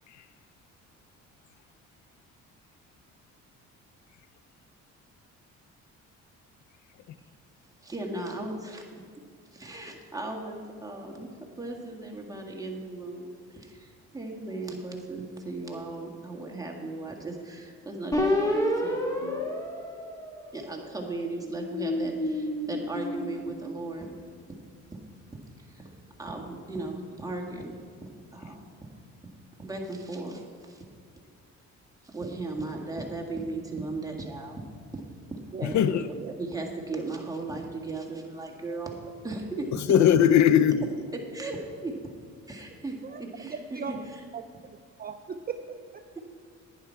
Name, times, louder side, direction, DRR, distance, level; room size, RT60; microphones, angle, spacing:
voice 1, 7.8-8.8 9.5-11.3 11.6-19.6 20.5-24.1 24.9-25.0 25.6-25.9 26.2-27.8 28.0-28.7 29.6-30.8 32.0-34.6 34.9-35.0 35.3-36.1 36.4-39.0 39.2-39.7 41.3-41.9 42.5-44.0 46.2-46.3, right 2 dB, 10° right, 2.0 m, -37 dB
sound 1, 18.1-20.8 21.4-23.9, left 1 dB, 10° left, 2.0 m, -30 dB
voice 2, 19.2-19.9 35.6-36.1 39.7-40.9, left 9 dB, 70° left, 0.5 m, -22 dB
voice 3, 43.0-43.9 44.3-44.4 45.0-46.2, right 6 dB, 30° right, 0.5 m, -38 dB
11.0 x 9.7 x 4.6 m
cardioid pair, 90°, 30 cm